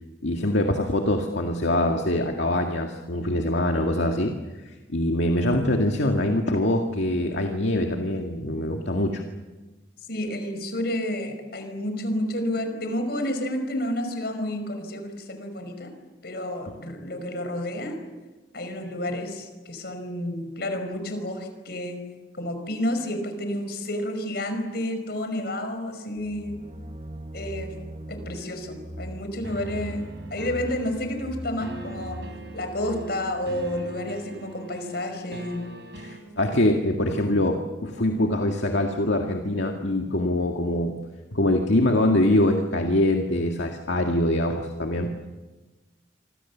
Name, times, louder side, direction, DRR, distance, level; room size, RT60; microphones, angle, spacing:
voice 1, 0.2-4.3 4.9-9.2 36.0-40.9 41.3-45.1, left 1 dB, 70° left, 2 dB, 2.0 m, -24 dB
voice 2, 10.1-15.9 16.2-18.0 18.5-22.0 22.3-26.6 27.3-27.8 28.1-32.2 32.5-35.6, left 1 dB, 55° left, 7 dB, 5.5 m, -30 dB
sound 1, 26.2-33.9, right 1 dB, 35° right, 1.4 m, -40 dB
sound 2, 29.4-36.2, right 2 dB, 65° right, 4.2 m, -41 dB
27.5 x 25.5 x 7.4 m, 1.2 s
head